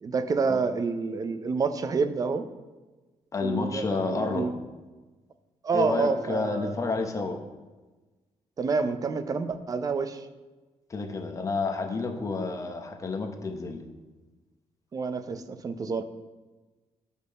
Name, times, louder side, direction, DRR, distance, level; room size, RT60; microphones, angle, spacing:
voice 1, 0.0-2.5 3.4-4.5 5.6-6.7 8.6-10.3 14.9-16.0, right 4 dB, 30° right, 9 dB, 0.6 m, -28 dB
voice 2, 3.3-4.5 5.7-7.4 10.9-13.9, left 3 dB, 25° left, 4 dB, 0.9 m, -30 dB
8.1 x 5.4 x 6.6 m, 1.2 s
cardioid pair, 175°, 13 cm